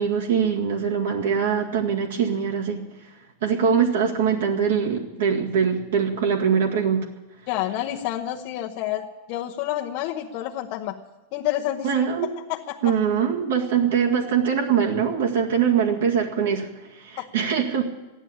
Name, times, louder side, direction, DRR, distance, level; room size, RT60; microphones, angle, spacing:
voice 1, 0.0-2.8 3.4-7.1 11.8-12.3 12.8-17.8, right 7 dB, 80° right, 0 dB, 2.0 m, -22 dB
voice 2, 7.5-11.0 11.3-12.1 12.5-12.8 17.2-17.3, left 13 dB, 45° left, 0 dB, 0.9 m, -29 dB
14.5 x 11.0 x 8.7 m, 1.1 s
supercardioid pair, 150°, 0 cm